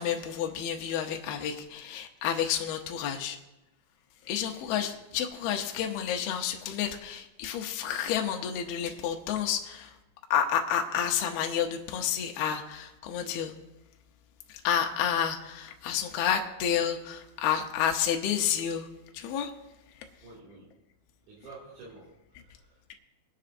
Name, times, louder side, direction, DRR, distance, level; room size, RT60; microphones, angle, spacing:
voice 1, 0.0-3.4 4.2-10.0 10.3-13.5 14.5-18.9 19.1-19.5, left 9 dB, 80° left, 2 dB, 2.2 m, -30 dB
voice 2, 13.1-13.4 20.2-20.7 21.2-23.0, right 3 dB, 70° right, -8 dB, 4.6 m, -50 dB
22.0 x 10.5 x 2.6 m, 1.0 s
omnidirectional pair, 5.4 m